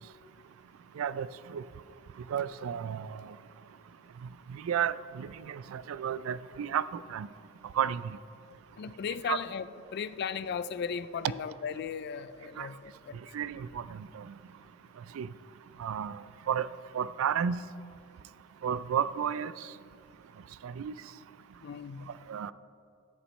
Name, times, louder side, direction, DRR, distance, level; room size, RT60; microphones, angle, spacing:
voice 1, 1.0-1.6 2.3-3.4 4.5-7.3 7.7-8.0 9.3-9.4 12.6-12.7 13.3-14.3 15.1-15.3 15.8-16.7 16.9-17.6 18.6-19.5 20.6-20.9 22.3-22.5, right 8 dB, 80° right, 17 dB, 0.3 m, -32 dB
voice 2, 8.8-9.7 9.9-13.2 21.6-22.1, left 7 dB, 50° left, 14 dB, 0.3 m, -36 dB
14.0 x 8.2 x 3.2 m, 2.6 s
head